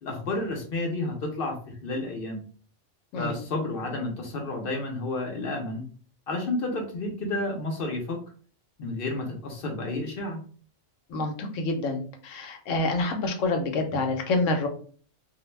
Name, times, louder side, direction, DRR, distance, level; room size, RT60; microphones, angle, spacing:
voice 1, 0.0-2.4 3.2-5.9 6.3-8.2 8.8-10.4, left 2 dB, 60° left, 2 dB, 0.6 m, -31 dB
voice 2, 11.1-14.7, left 2 dB, 80° left, 5 dB, 0.9 m, -27 dB
2.4 x 2.1 x 3.1 m, 0.43 s
omnidirectional pair, 1.3 m